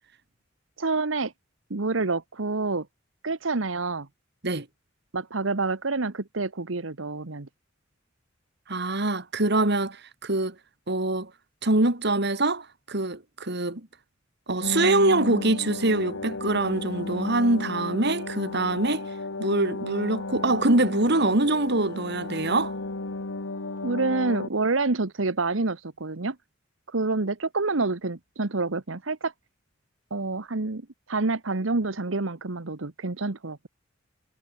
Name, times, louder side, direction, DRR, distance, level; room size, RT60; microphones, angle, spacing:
voice 1, 0.8-1.3 1.7-2.9 3.2-4.1 5.1-7.5 23.8-26.4 26.9-29.3 30.1-33.7, right 3 dB, 80° right, 1.3 m, -28 dB
voice 2, 8.7-10.5 10.9-11.3 11.6-13.9 14.5-19.1 19.4-22.8, right 2 dB, 60° right, 3.1 m, -24 dB
sound 1, 14.6-24.5, left 3 dB, 85° left, 1.4 m, -34 dB
head